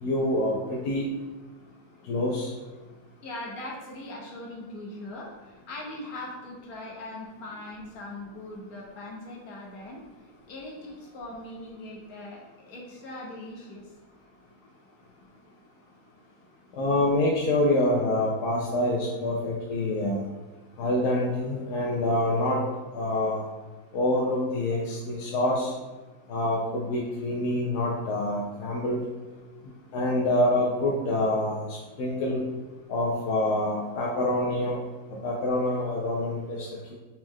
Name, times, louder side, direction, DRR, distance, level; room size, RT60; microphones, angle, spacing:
voice 1, 0.0-1.0 2.1-2.5 16.8-20.2 20.8-22.6 22.9-23.4 23.9-25.7 26.3-29.0 29.9-32.4 32.9-34.8 35.2-36.9, left 1 dB, 85° left, -3 dB, 1.2 m, -26 dB
voice 2, 3.2-13.9, left 1 dB, 65° left, -3 dB, 1.5 m, -40 dB
4.2 x 3.1 x 3.6 m, 1.2 s
omnidirectional pair, 1.7 m